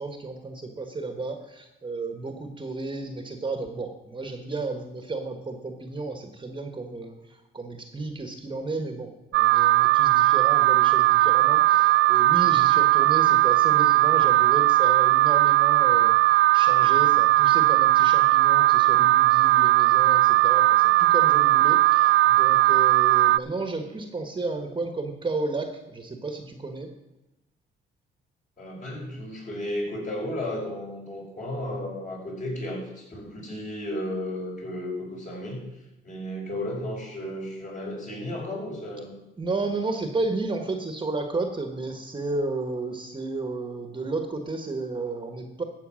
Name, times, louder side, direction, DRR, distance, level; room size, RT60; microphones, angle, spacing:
voice 1, 0.0-26.9 39.4-45.6, right 3 dB, 25° right, 6 dB, 1.3 m, -33 dB
Alarm, 9.3-23.4, right 16 dB, 75° right, 0.4 m, -19 dB
voice 2, 28.6-35.7 36.0-39.1, left 1 dB, 40° left, -2 dB, 5.7 m, -33 dB
12.5 x 8.0 x 6.3 m, 0.96 s
cardioid pair, 90°, 20 cm